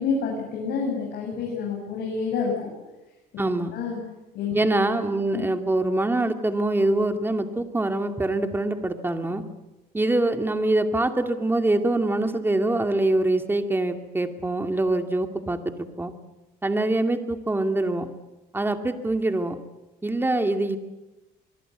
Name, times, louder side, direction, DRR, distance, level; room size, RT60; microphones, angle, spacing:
voice 1, 0.0-2.7 3.7-4.0 4.3-4.6 5.3-5.4, left 5 dB, 75° left, -1 dB, 7.8 m, -28 dB
voice 2, 3.4-3.7 4.5-9.4 9.9-16.1 16.6-18.1 18.5-19.6 20.0-20.8, right 2 dB, 10° right, 6 dB, 2.4 m, -24 dB
25.0 x 23.0 x 8.1 m, 1.0 s
cardioid pair, 110°, 17 cm